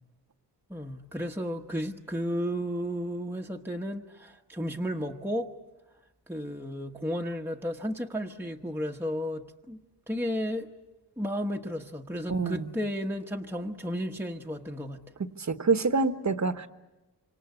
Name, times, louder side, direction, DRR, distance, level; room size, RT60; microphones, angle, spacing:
voice 1, 0.7-5.5 6.3-9.8 10.1-10.7 11.2-15.0, equal, 5° right, 1 dB, 1.2 m, -33 dB
voice 2, 12.3-12.7 15.4-16.7, right 4 dB, 40° right, 10 dB, 1.2 m, -26 dB
26.5 x 26.0 x 8.3 m, 1.0 s
wide cardioid pair, 115°, 41 cm